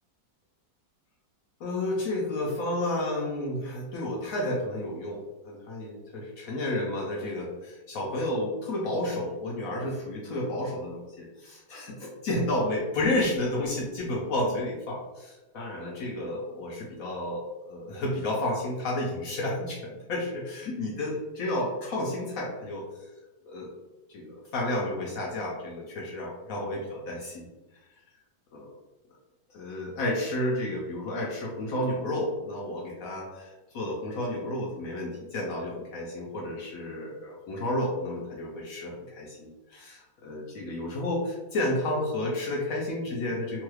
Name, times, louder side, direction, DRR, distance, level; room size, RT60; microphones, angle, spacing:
voice 1, 1.6-23.1 23.4-23.7 24.1-27.5 28.5-28.7 29.5-43.6, left 1 dB, 70° left, -3 dB, 0.8 m, -31 dB
3.0 x 2.3 x 3.1 m, 1.1 s
omnidirectional pair, 1.9 m